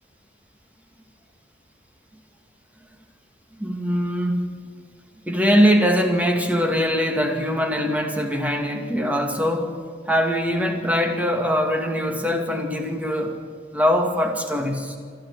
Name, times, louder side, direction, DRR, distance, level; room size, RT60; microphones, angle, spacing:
voice 1, 3.5-4.6 5.3-9.7 10.1-13.4 13.7-15.0, equal, 10° right, 3 dB, 2.1 m, -22 dB
26.0 x 13.0 x 8.2 m, 2.1 s
head